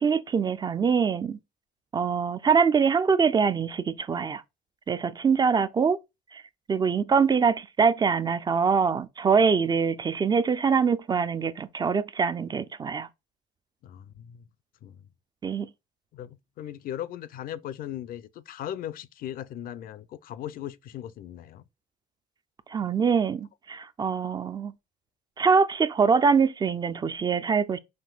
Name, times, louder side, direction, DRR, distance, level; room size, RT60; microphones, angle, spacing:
voice 1, 0.0-1.4 1.9-4.4 4.9-6.0 6.3-6.4 6.7-13.1 15.4-15.7 22.7-24.7 25.4-27.8, right 5 dB, 25° right, 0.3 m, -24 dB
voice 2, 13.8-14.4 14.8-15.0 16.1-21.6, left 11 dB, 60° left, 0.4 m, -38 dB
5.9 x 2.6 x 2.3 m
cardioid pair, 110°, 17 cm